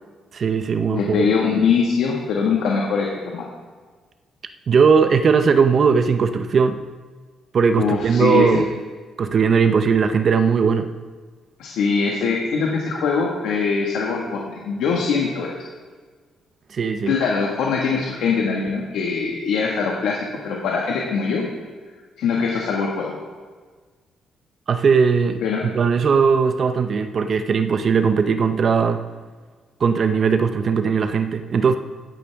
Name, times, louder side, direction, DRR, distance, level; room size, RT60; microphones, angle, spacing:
voice 1, 0.3-1.3 4.7-6.8 7.5-8.7 9.2-10.9 16.7-17.2 24.7-29.0 29.8-31.8, right 5 dB, 50° right, 9 dB, 0.6 m, -18 dB
voice 2, 0.9-3.4 7.8-8.6 11.6-15.5 17.1-20.2 20.4-21.4 22.2-23.1 25.4-25.6, left 5 dB, 85° left, -2 dB, 1.6 m, -22 dB
15.0 x 10.5 x 3.5 m, 1.5 s
cardioid pair, 90°, 0 cm